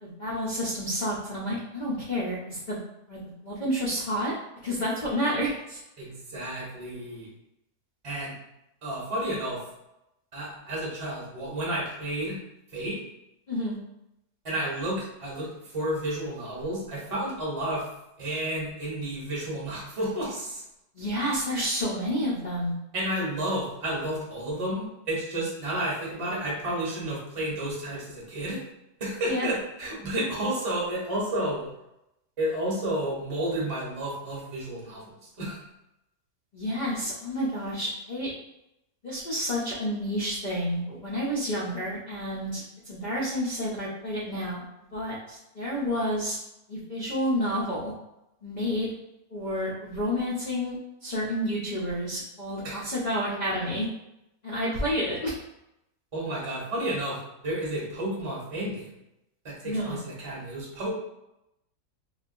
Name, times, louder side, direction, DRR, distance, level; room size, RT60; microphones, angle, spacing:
voice 1, 0.0-2.8 3.1-4.3 4.6-5.8 13.5-13.8 20.9-22.7 29.3-29.5 36.5-38.3 39.0-44.6 44.9-46.4 46.7-47.9 48.4-48.9 49.3-53.9 54.4-55.3 59.6-60.0, equal, 55° left, -7 dB, 0.5 m, -30 dB
voice 2, 6.0-7.3 8.0-8.3 8.8-9.6 10.3-12.4 12.7-13.0 14.4-17.8 18.2-20.6 22.9-28.6 29.0-31.7 32.4-35.6 52.6-52.8 56.1-57.2 57.4-58.9 59.4-60.9, right 1 dB, 25° right, -5 dB, 0.9 m, -31 dB
3.4 x 2.4 x 2.5 m, 0.87 s
omnidirectional pair, 1.7 m